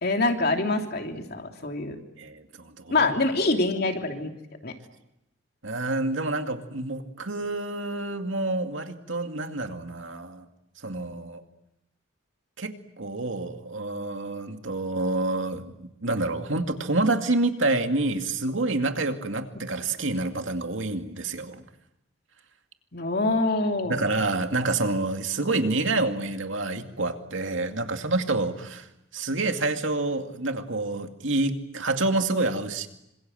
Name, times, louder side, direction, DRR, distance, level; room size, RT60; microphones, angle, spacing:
voice 1, 0.0-2.0 2.9-4.3 4.6-4.7 22.9-24.0, left 2 dB, 55° left, 3 dB, 3.1 m, -25 dB
voice 2, 2.2-3.2 5.6-10.4 10.8-11.4 12.6-21.6 23.9-28.9 29.1-32.9, right 2 dB, 80° right, 6 dB, 2.3 m, -28 dB
27.0 x 26.0 x 7.8 m, 0.86 s
head